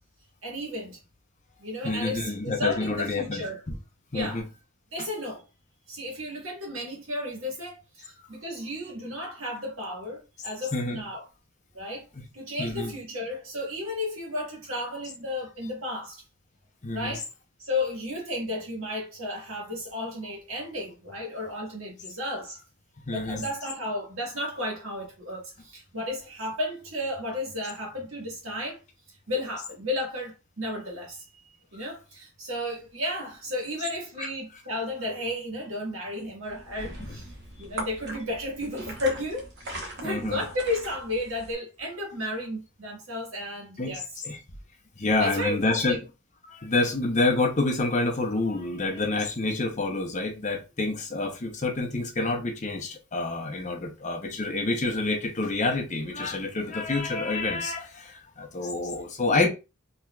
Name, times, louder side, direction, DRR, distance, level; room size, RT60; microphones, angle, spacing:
voice 1, 0.4-1.0 1.6-3.6 4.1-4.4 4.9-5.5 5.9-11.2 11.7-12.0 12.3-16.2 16.9-17.2 17.6-22.6 23.1-28.8 29.3-37.3 37.6-44.0 45.2-46.0, left 1 dB, 70° right, 1.6 m, -33 dB
voice 2, 1.8-3.7 4.1-4.5 5.0-5.1 8.2-8.3 10.7-11.0 12.6-12.9 16.8-17.2 23.1-23.5 31.7-31.8 34.2-34.3 37.0-37.1 40.0-40.4 43.8-44.4 45.0-46.0 46.4-59.5, left 3 dB, 35° left, 0.7 m, -28 dB
sound 1, 36.4-41.5, right 1 dB, 55° right, 1.0 m, -40 dB
3.9 x 2.9 x 2.3 m
head